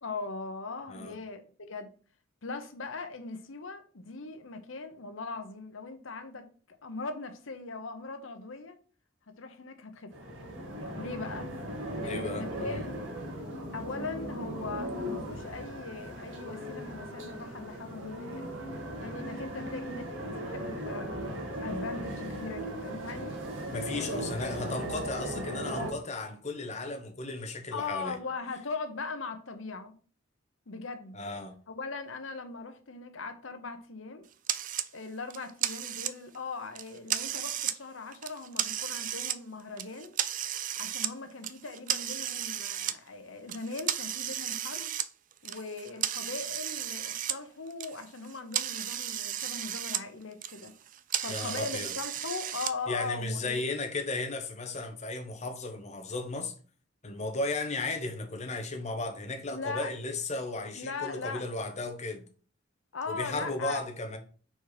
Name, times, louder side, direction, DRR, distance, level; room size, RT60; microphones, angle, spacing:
voice 1, 0.0-1.9 2.4-8.8 9.4-10.1 11.0-11.5 12.0-12.9 13.7-18.5 19.0-23.4 23.9-24.4 27.7-29.9 30.7-31.2 31.7-34.3 34.9-40.2 40.8-44.9 45.4-50.7 51.2-53.6 59.5-59.9 60.7-61.5 62.9-63.8, left 4 dB, 90° left, 1.0 m, -40 dB
sound 1, 10.1-25.9, equal, 75° right, 1.7 m, -37 dB
voice 2, 12.0-12.9 23.7-28.1 31.1-31.5 51.3-51.9 52.9-56.5 57.0-62.2 63.1-64.2, left 2 dB, 35° left, 1.1 m, -35 dB
sound 2, 34.5-34.9 35.3-36.4 36.7-37.8 38.1-39.4 39.8-41.1 41.4-42.9 43.5-47.4 47.7-50.0 50.3-52.7, right 11 dB, 45° right, 0.4 m, -34 dB
4.6 x 4.5 x 4.8 m
head